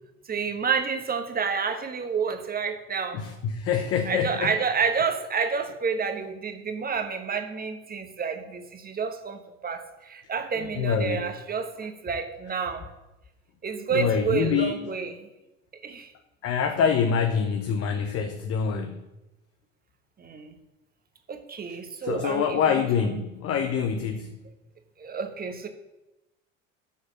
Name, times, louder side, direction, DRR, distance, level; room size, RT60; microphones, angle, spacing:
voice 1, 0.3-3.2 4.1-12.9 13.6-15.3 15.8-16.1 20.2-20.6 21.3-23.2 25.0-25.7, right 6 dB, 25° right, 7 dB, 1.2 m, -29 dB
voice 2, 3.1-4.5 10.8-11.3 13.9-14.8 16.4-19.0 22.0-24.3, left 7 dB, 35° left, 7 dB, 0.9 m, -25 dB
7.3 x 6.4 x 7.5 m, 0.98 s
figure-of-eight pair, 65°, 39 cm